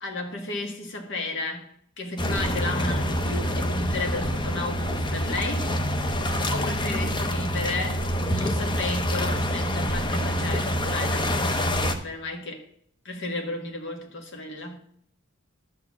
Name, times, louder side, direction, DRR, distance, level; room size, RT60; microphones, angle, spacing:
voice 1, 0.0-5.7 6.0-12.7 13.0-14.8, left 2 dB, 60° left, 1.6 m, -33 dB
sound 1, 2.2-11.9, equal, 20° left, 0.8 m, -26 dB
11.5 x 4.4 x 7.2 m
head